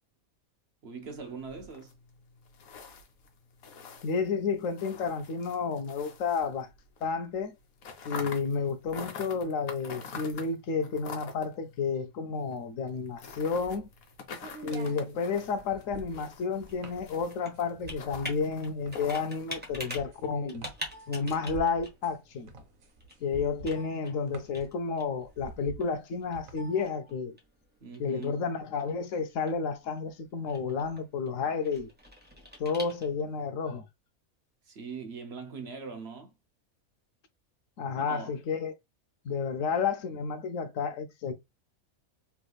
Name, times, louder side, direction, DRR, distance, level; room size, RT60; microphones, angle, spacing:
voice 1, 0.8-1.9 27.8-28.5 34.6-36.3 38.0-38.3, right 5 dB, 55° right, 0.9 m, -41 dB
sound 1, 1.0-7.0 7.3-19.6, left 5 dB, 90° left, 1.3 m, -46 dB
voice 2, 4.0-6.7 7.0-7.5 8.0-13.9 14.6-20.7 21.1-22.5 23.2-27.4 28.0-31.9 32.6-33.9 37.8-38.7 39.2-41.3, left 5 dB, 70° left, 1.0 m, -31 dB
sound 2, 12.9-26.8, right 3 dB, 75° right, 1.3 m, -48 dB
Computer keyboard, 15.1-33.4, equal, 10° right, 1.1 m, -47 dB
3.4 x 3.3 x 2.3 m
omnidirectional pair, 1.5 m